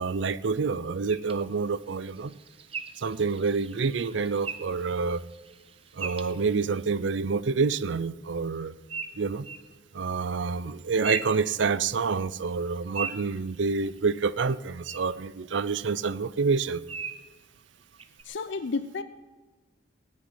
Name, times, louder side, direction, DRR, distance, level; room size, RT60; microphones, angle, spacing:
voice 1, 0.0-2.4 3.0-5.2 5.9-8.8 9.2-9.4 9.9-16.8, right 4 dB, 80° right, 17 dB, 0.5 m, -28 dB
Pyrrhula pyrrhula, 1.1-7.0 8.9-9.7 10.7-12.1 12.5-14.2 14.8-15.0 15.5-15.6 16.9-17.3 18.0-18.2, right 5 dB, 30° right, 0.8 m, -40 dB
voice 2, 18.3-19.0, left 4 dB, 80° left, 10 dB, 0.6 m, -31 dB
17.5 x 6.5 x 9.8 m, 1.2 s
head